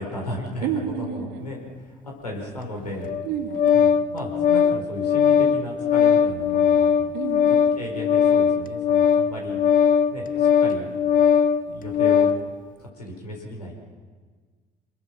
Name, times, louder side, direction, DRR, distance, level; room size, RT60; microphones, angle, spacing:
voice 1, 0.0-3.1 3.7-7.2 7.8-9.6 10.1-10.9 11.6-12.3 12.8-13.9, left 1 dB, 90° left, 0 dB, 4.5 m, -35 dB
voice 2, 0.6-1.5 3.2-3.7 7.1-7.6, right 8 dB, 65° right, 5 dB, 2.3 m, -30 dB
Organ, 3.0-12.4, left 7 dB, 45° left, 1.1 m, -20 dB
27.0 x 21.5 x 6.0 m, 1.5 s
figure-of-eight pair, 55°, 20 cm